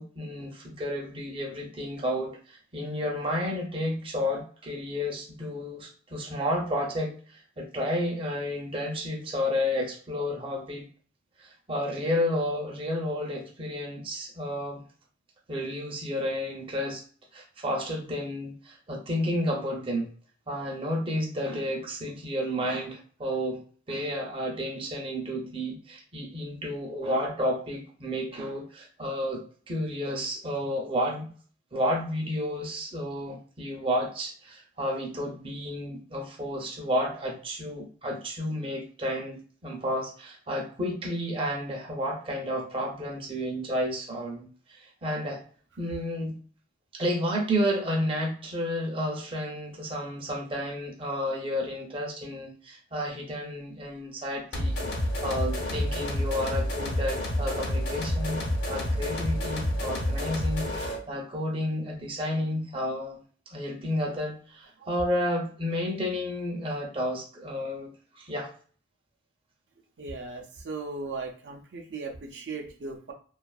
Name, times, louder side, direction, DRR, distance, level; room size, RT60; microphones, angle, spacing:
voice 1, 0.0-7.1 7.6-10.8 11.4-14.8 15.5-17.0 17.3-20.1 20.5-23.6 23.9-31.3 31.7-45.4 45.8-46.4 46.9-54.9 55.2-63.2 63.5-68.5, equal, 30° right, 0 dB, 0.5 m, -31 dB
sound 1, 54.5-61.0, left 1 dB, 70° left, 0.7 m, -29 dB
voice 2, 70.0-73.1, right 3 dB, 80° right, 1 dB, 0.5 m, -37 dB
2.4 x 2.4 x 2.3 m, 0.41 s
head